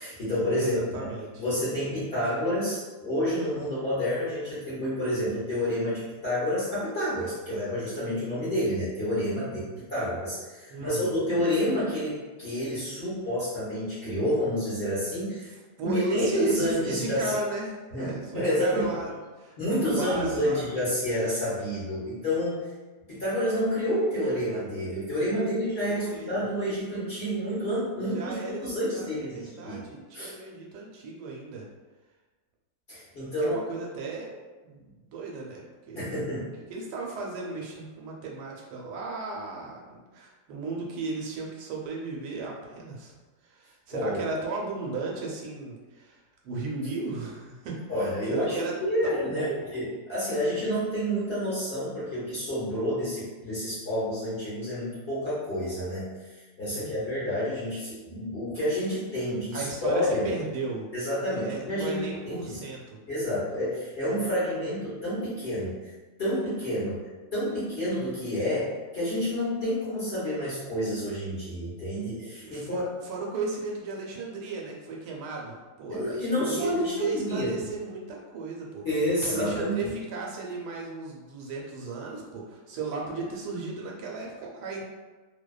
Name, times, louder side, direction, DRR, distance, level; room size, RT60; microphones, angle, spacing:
voice 1, 0.0-1.1 1.4-15.5 15.8-17.3 17.9-18.9 19.6-22.7 23.1-28.4 28.6-30.3 32.9-33.6 35.9-36.5 43.9-44.2 47.9-60.3 60.9-62.6 63.1-65.9 66.2-67.0 67.3-72.9 75.9-77.5 78.8-79.9, equal, 50° left, -11 dB, 0.7 m, -29 dB
voice 2, 0.5-1.4 10.7-11.2 15.8-20.6 25.3-25.4 25.8-26.4 28.1-28.6 28.9-31.6 33.4-34.3 34.6-36.1 36.7-43.1 43.4-48.7 49.0-49.6 56.7-57.2 59.5-60.9 61.4-63.0 72.4-78.9 79.2-84.9, right 3 dB, 80° right, -2 dB, 1.2 m, -35 dB
2.6 x 2.2 x 2.2 m, 1.3 s
omnidirectional pair, 1.8 m